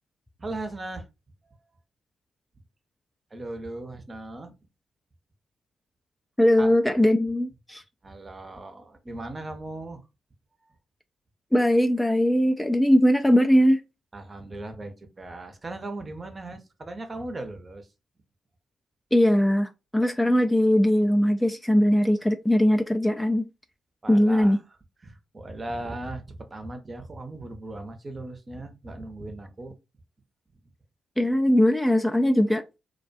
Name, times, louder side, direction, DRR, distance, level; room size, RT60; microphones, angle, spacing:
voice 1, 0.4-1.1 3.3-4.5 6.6-6.8 8.0-10.0 10.6-10.7 14.1-17.9 24.0-24.6 25.0-29.8, right 2 dB, 35° right, 0.7 m, -38 dB
voice 2, 6.4-7.8 11.5-13.8 19.1-23.5 24.1-24.6 31.2-32.6, equal, 10° left, 0.3 m, -20 dB
2.4 x 2.2 x 2.5 m
hypercardioid pair, 40°, 0 cm